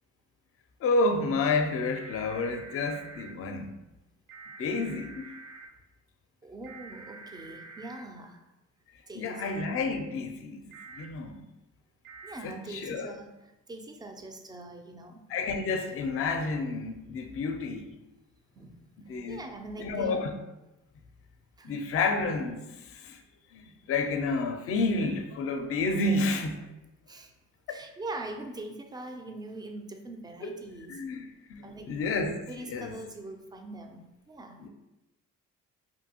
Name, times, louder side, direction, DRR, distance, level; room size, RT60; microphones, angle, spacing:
voice 1, 0.8-3.7 4.6-5.3 9.2-10.6 10.9-11.4 12.4-13.1 15.3-17.9 19.1-19.4 19.8-20.3 21.6-23.2 23.5-26.7 27.7-27.8 30.4-30.5 30.9-32.4 32.7-32.9 34.6-34.7, left 3 dB, 50° left, 6 dB, 0.4 m, -30 dB
sound 1, 1.9-3.3 4.3-5.7 6.6-8.0 9.4-9.7 10.7-11.1 12.0-12.4, right 4 dB, 70° right, 0.6 m, -47 dB
voice 2, 6.4-8.4 9.1-9.6 12.2-15.3 18.6-18.8 19.3-20.2 21.6-21.8 27.1-27.3 27.7-31.0 31.6-32.1 32.5-34.6, right 2 dB, 15° right, 5 dB, 0.3 m, -42 dB
2.6 x 2.5 x 2.8 m, 0.97 s
cardioid pair, 90°, 30 cm